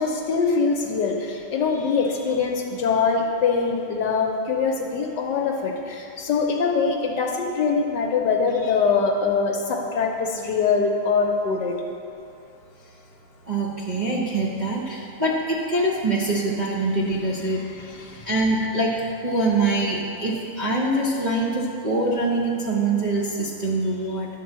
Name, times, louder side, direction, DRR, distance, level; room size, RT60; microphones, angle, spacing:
voice 1, 0.0-11.8 17.7-18.3, left 5 dB, 65° left, 1 dB, 1.2 m, -23 dB
voice 2, 13.5-17.6 18.3-24.3, right 2 dB, 50° right, -7 dB, 0.5 m, -24 dB
11.0 x 3.9 x 7.3 m, 2.6 s
omnidirectional pair, 2.3 m